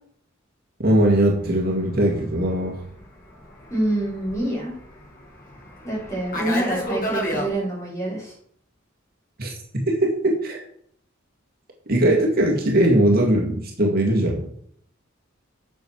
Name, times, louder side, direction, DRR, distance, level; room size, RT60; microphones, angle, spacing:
voice 1, 0.8-2.7 9.4-9.5 9.9-10.6 11.9-14.6, right 1 dB, 50° right, -1 dB, 2.1 m, -20 dB
Fixed-wing aircraft airplane, 1.0-7.5, equal, 45° left, 2.3 m, -32 dB
voice 2, 3.7-4.7 5.8-8.4, right 1 dB, 15° left, -6 dB, 5.4 m, -26 dB
9.3 x 6.5 x 6.3 m, 0.65 s
head